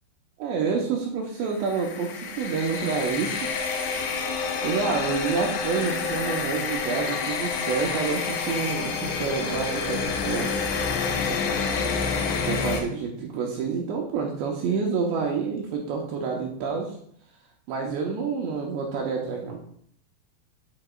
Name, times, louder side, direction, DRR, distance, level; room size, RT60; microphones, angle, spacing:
voice 1, 0.4-3.5 4.6-10.5 12.4-16.9 17.7-19.6, right 5 dB, 80° right, 0 dB, 2.7 m, -28 dB
sound 1, 1.6-12.8, left 5 dB, 90° left, 3.5 m, -28 dB
8.6 x 7.9 x 2.3 m, 0.64 s
omnidirectional pair, 5.6 m